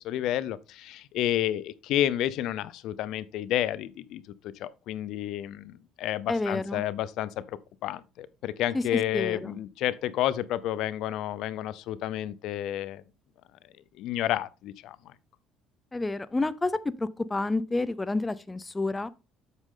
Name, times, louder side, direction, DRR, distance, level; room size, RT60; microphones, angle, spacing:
voice 1, 0.0-4.2 4.6-13.0 14.0-15.1, left 12 dB, 70° left, 0.6 m, -30 dB
voice 2, 6.3-6.8 8.7-8.8 9.1-9.6 15.9-16.7 17.0-19.1, left 2 dB, 15° left, 0.5 m, -29 dB
8.2 x 6.4 x 3.8 m
cardioid pair, 105°, 0 cm